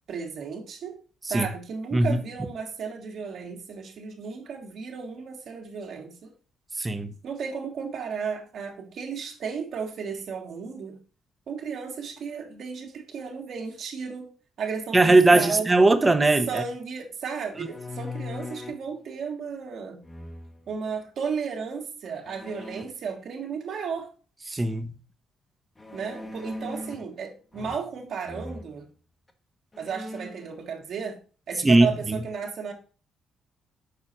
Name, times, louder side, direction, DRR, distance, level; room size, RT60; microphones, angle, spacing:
voice 1, 0.1-1.0 1.2-6.3 7.2-11.0 11.5-15.7 16.5-20.0 20.7-24.1 25.9-28.9 29.8-31.2 31.5-32.7, right 6 dB, 65° right, 1.9 m, -34 dB
voice 2, 6.8-7.1 14.9-16.6 24.5-24.9 31.6-32.2, right 2 dB, 20° right, 0.9 m, -19 dB
sound 1, 17.5-18.9 20.0-20.7 22.2-22.8 25.8-27.1 27.5-28.0 28.3-28.7 29.3-29.4 29.7-30.5, left 2 dB, 20° left, 1.0 m, -39 dB
6.7 x 4.9 x 4.2 m
cardioid pair, 90°, 0 cm